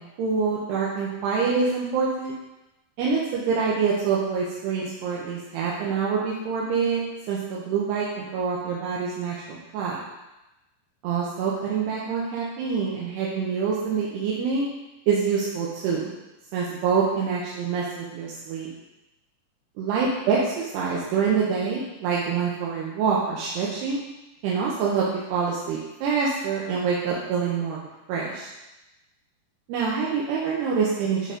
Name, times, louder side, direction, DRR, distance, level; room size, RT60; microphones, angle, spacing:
voice 1, 0.0-2.3 3.0-10.0 11.0-14.7 15.1-16.1 16.5-18.7 19.8-24.0 24.4-27.8 28.1-28.5 29.7-31.3, right 5 dB, 80° right, -5 dB, 3.0 m, -26 dB
8.9 x 3.8 x 5.1 m, 0.98 s
omnidirectional pair, 4.8 m